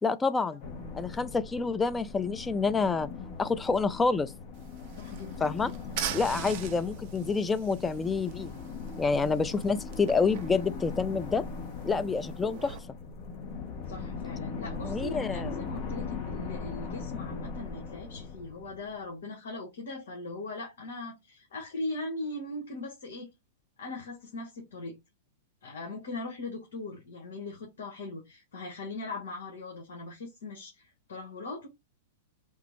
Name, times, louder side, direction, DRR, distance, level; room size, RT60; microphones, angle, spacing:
voice 1, 0.0-0.6 0.9-3.1 3.4-4.3 5.4-5.7 6.1-8.5 9.0-11.4 11.8-12.8 14.8-15.6, left 4 dB, 15° left, 0.3 m, -28 dB
sound 1, 0.6-19.0, left 4 dB, 40° left, 0.8 m, -40 dB
sound 2, 4.5-12.8, right 10 dB, 50° right, 0.6 m, -42 dB
voice 2, 5.0-5.5 13.9-23.3 23.8-25.0 25.6-31.7, left 2 dB, 75° left, 1.1 m, -40 dB
3.3 x 2.0 x 3.0 m
hypercardioid pair, 120°, 0 cm